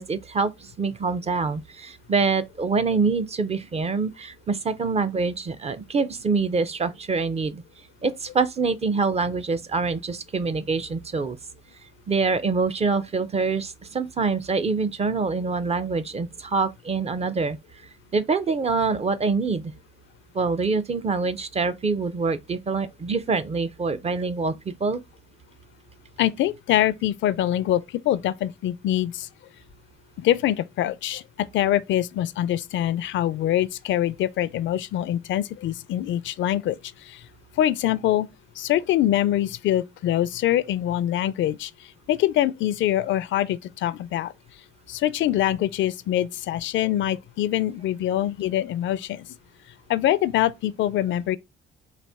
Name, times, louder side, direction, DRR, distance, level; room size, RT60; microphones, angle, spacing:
voice 1, 0.0-7.6 8.0-11.4 12.1-17.6 18.1-19.7 20.3-25.0, right 4 dB, 30° right, 0.5 m, -25 dB
voice 2, 26.2-29.3 30.2-37.2 37.6-38.3 38.6-41.7 42.1-44.3 44.9-49.3 49.9-51.4, left 12 dB, 70° left, 0.4 m, -24 dB
4.1 x 2.7 x 3.4 m
cardioid pair, 90°, 20 cm